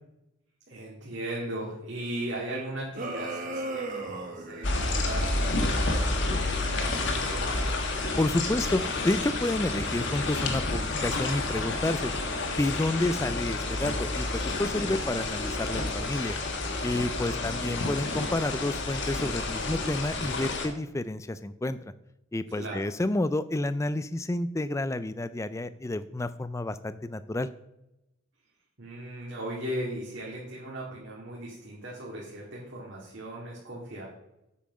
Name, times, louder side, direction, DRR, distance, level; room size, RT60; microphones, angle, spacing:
voice 1, 0.7-7.8 17.2-17.5 22.5-22.9 28.8-34.1, right 1 dB, 55° right, -5 dB, 2.2 m, -38 dB
sound 1, 2.9-5.1, right 2 dB, 40° right, 1.2 m, -35 dB
sound 2, 4.6-20.7, left 2 dB, 55° left, 1.4 m, -30 dB
voice 2, 8.2-12.1 12.5-16.4 16.8-21.8 22.3-27.5, left 1 dB, 15° left, 14 dB, 0.3 m, -30 dB
8.4 x 5.7 x 6.2 m, 0.89 s
head